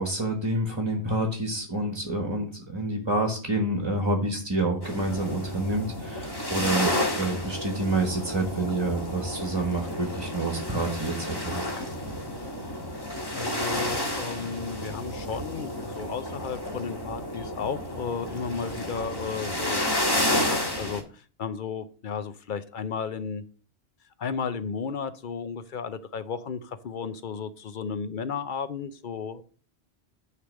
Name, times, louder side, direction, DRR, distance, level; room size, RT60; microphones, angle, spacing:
voice 1, 0.0-11.7, right 2 dB, 25° right, 3 dB, 1.2 m, -28 dB
sound 1, 4.8-21.0, left 1 dB, 20° left, 1.5 m, -31 dB
voice 2, 13.3-19.8 20.3-23.4 24.2-29.4, left 6 dB, 55° left, 13 dB, 0.6 m, -34 dB
9.6 x 3.3 x 6.2 m, 0.41 s
omnidirectional pair, 1.1 m